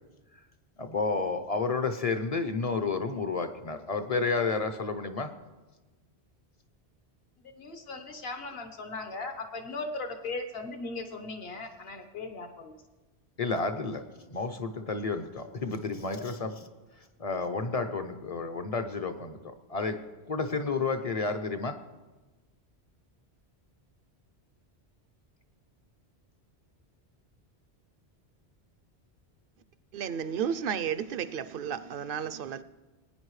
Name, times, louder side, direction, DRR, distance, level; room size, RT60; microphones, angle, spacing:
voice 1, 0.8-5.3 13.4-14.0 14.3-16.5 17.2-19.4 19.7-20.0 20.3-21.8, left 4 dB, 40° left, 0.6 m, -31 dB
voice 2, 7.6-12.8 16.1-16.5, left 3 dB, 65° left, 1.3 m, -38 dB
voice 3, 29.9-32.6, right 8 dB, 60° right, 0.7 m, -32 dB
20.0 x 9.6 x 3.2 m
omnidirectional pair, 1.1 m